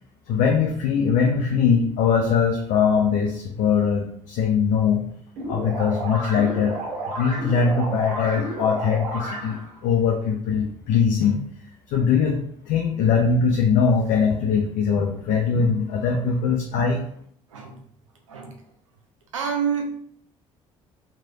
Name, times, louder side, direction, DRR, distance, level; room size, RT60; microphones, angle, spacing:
voice 1, 0.3-5.0 5.5-6.8 7.2-11.4 11.9-12.4 12.7-17.0, left 6 dB, 55° left, 2 dB, 0.4 m, -21 dB
sound 1, 5.4-9.8, right 1 dB, 60° right, 1.2 m, -31 dB
voice 2, 19.3-19.9, right 7 dB, 85° right, 2 dB, 0.5 m, -27 dB
3.1 x 2.9 x 2.4 m, 0.65 s
figure-of-eight pair, 50°, 16 cm